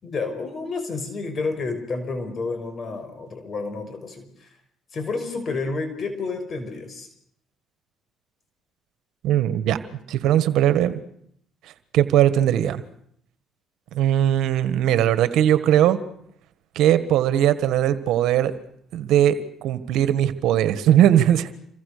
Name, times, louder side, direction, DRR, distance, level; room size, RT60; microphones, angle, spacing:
voice 1, 0.0-4.6 4.9-7.1, left 3 dB, 45° left, 8 dB, 5.5 m, -30 dB
voice 2, 9.2-9.8 10.1-11.0 11.9-12.8 13.9-16.0 16.7-18.5 18.9-19.4 19.6-21.5, right 11 dB, 75° right, 13 dB, 1.6 m, -19 dB
28.0 x 24.0 x 6.8 m, 0.70 s
supercardioid pair, 75°, 0 cm